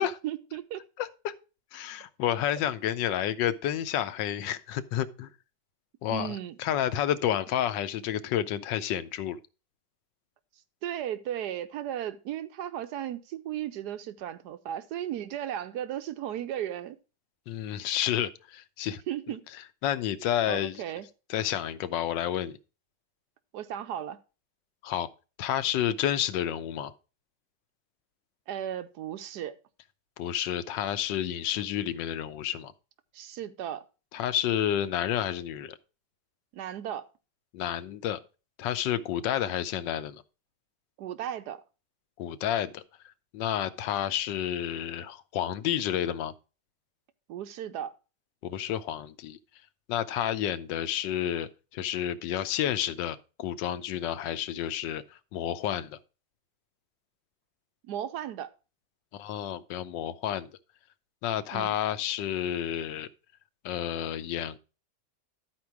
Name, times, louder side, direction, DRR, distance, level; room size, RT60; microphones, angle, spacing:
voice 1, 0.2-0.8 6.1-6.6 10.8-17.0 19.1-19.4 20.5-21.1 23.5-24.2 28.5-29.6 33.1-33.8 36.5-37.1 41.0-41.6 47.3-47.9 57.8-58.5 61.5-61.8, right 11 dB, 75° right, 1.1 m, -35 dB
voice 2, 1.0-1.3 1.7-5.3 6.0-9.4 17.5-19.0 19.8-20.8 21.3-22.6 24.8-25.1 25.4-26.9 30.2-32.7 34.1-35.8 37.5-38.2 38.6-40.2 42.2-42.8 43.3-46.3 48.4-49.4 49.9-55.0 55.3-56.0 59.1-60.5 61.2-63.1 63.6-64.6, left 10 dB, 85° left, 1.3 m, -30 dB
12.0 x 4.5 x 4.6 m
omnidirectional pair, 1.9 m